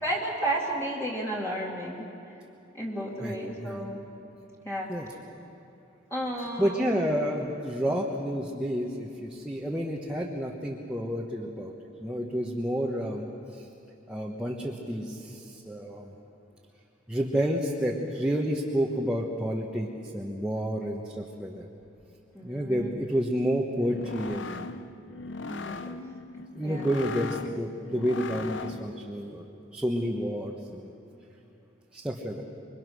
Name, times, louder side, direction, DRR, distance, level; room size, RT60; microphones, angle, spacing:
voice 1, 0.0-2.1 2.7-4.0 4.6-4.9 6.1-7.0 22.3-22.9 25.5-25.8 26.6-26.9, right 1 dB, 15° left, -4 dB, 2.4 m, -32 dB
voice 2, 3.2-3.9 4.9-5.1 6.6-11.7 12.0-13.3 13.5-13.7 14.1-16.1 17.1-21.7 22.4-24.7 25.8-26.0 26.5-29.5 29.7-30.9 31.9-32.4, equal, 5° right, -2 dB, 1.3 m, -30 dB
sound 1, 23.7-29.0, left 3 dB, 65° left, 0.8 m, -39 dB
27.0 x 23.0 x 6.4 m, 2.8 s
head